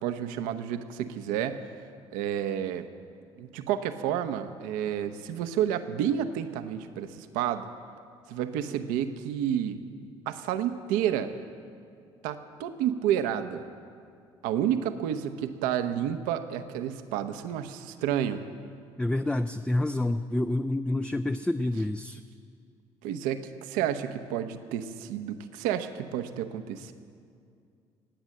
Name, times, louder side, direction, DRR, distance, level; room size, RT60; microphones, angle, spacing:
voice 1, 0.0-1.6 2.1-2.8 3.4-7.7 8.3-9.8 10.3-11.3 12.2-13.6 14.4-18.4 23.0-26.9, right 10 dB, 75° right, 10 dB, 0.8 m, -30 dB
voice 2, 19.0-22.2, left 1 dB, 5° left, 9 dB, 0.4 m, -28 dB
19.0 x 8.1 x 7.6 m, 2.3 s
hypercardioid pair, 55°, 14 cm